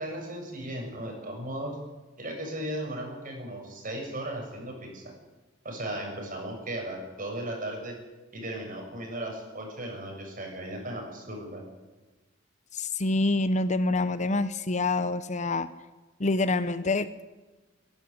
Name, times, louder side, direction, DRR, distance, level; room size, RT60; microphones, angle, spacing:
voice 1, 0.0-1.8 2.2-5.0 5.6-7.9 8.3-11.6, right 1 dB, 45° right, 1 dB, 7.4 m, -36 dB
voice 2, 12.7-15.7 16.2-17.1, left 2 dB, 40° left, 14 dB, 0.9 m, -26 dB
23.0 x 12.5 x 9.7 m, 1.2 s
head